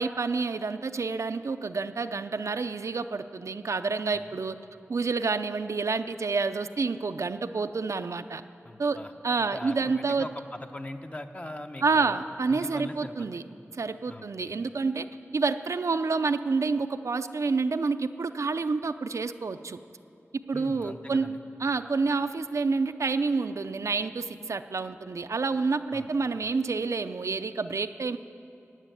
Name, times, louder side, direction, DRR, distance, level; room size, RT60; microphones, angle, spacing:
voice 1, 0.0-4.5 4.9-8.4 8.8-9.0 9.2-10.3 11.8-13.4 13.7-15.1 15.3-19.8 20.5-21.3 21.6-28.2, right 4 dB, 80° right, 9 dB, 0.5 m, -28 dB
voice 2, 8.6-9.1 9.4-12.2 12.5-13.3 14.1-14.5 20.5-21.4 25.9-26.1, left 1 dB, 25° left, 6 dB, 0.8 m, -41 dB
14.0 x 9.2 x 9.0 m, 2.6 s
wide cardioid pair, 70°, 5 cm